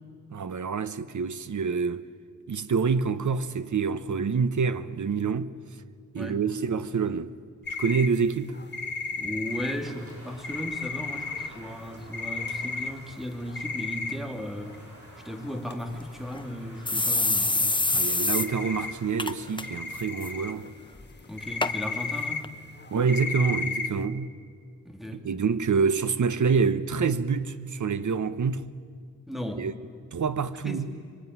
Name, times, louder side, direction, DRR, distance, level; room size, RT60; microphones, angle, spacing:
voice 1, 0.3-2.1 2.5-5.5 6.1-7.3 7.8-8.6 17.9-20.7 22.9-24.3 25.1-28.6 29.5-29.8 30.1-30.9, right 5 dB, 70° right, 1.0 m, -27 dB
sound 1, 7.7-14.5 14.7-14.8 15.1-15.2 15.5-15.7 16.2-16.3 16.5-17.0 17.2-18.0 18.3-19.3 19.6-24.0, left 4 dB, 35° left, 1.7 m, -34 dB
voice 2, 9.2-14.9 15.2-17.8 21.3-22.5 24.8-25.2 29.3-29.7 30.6-30.9, equal, ahead, 2.7 m, -36 dB
sound 2, 9.4-19.4, right 1 dB, 45° right, 7.3 m, -50 dB
sound 3, 15.9-16.0 16.3-16.4 16.9-18.5 18.8-18.9 19.2-19.6 20.0-20.3 21.0-21.1 21.6-21.7 22.4-22.5, left 2 dB, 15° left, 0.8 m, -25 dB
26.0 x 24.0 x 9.5 m
wide cardioid pair, 125°, 31 cm